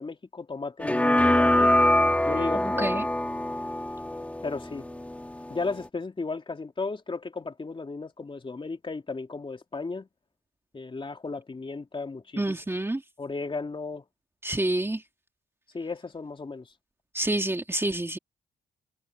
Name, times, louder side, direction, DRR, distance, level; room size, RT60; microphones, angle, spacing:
voice 1, 0.0-1.7 2.2-2.9 4.4-4.9 5.5-10.1 10.7-12.8 13.2-14.0 15.7-16.7, left 3 dB, 25° left, 3.0 m, -35 dB
sound 1, 0.8-5.9, left 1 dB, 5° left, 1.5 m, -24 dB
voice 2, 2.5-3.1 12.4-13.0 14.4-15.0 17.1-18.2, right 1 dB, 10° right, 1.9 m, -28 dB
cardioid pair, 90°, 20 cm